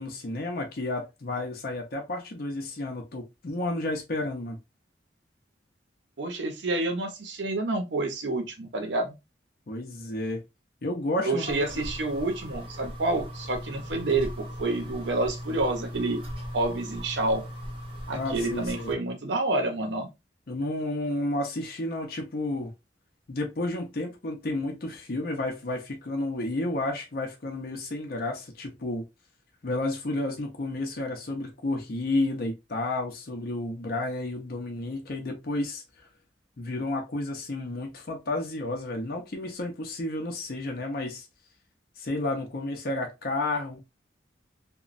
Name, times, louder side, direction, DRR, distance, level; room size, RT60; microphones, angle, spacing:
voice 1, 0.0-4.6 9.7-10.4 10.8-11.9 18.1-18.9 20.5-22.7 23.3-29.1 29.6-35.8 36.6-41.3 42.0-43.8, left 2 dB, 55° left, 0.6 m, -31 dB
voice 2, 6.2-9.1 11.2-16.2 16.5-17.4 18.1-20.1, right 2 dB, 80° right, 0.7 m, -28 dB
sound 1, 11.4-18.9, equal, 30° right, 0.7 m, -38 dB
2.9 x 2.2 x 2.5 m
head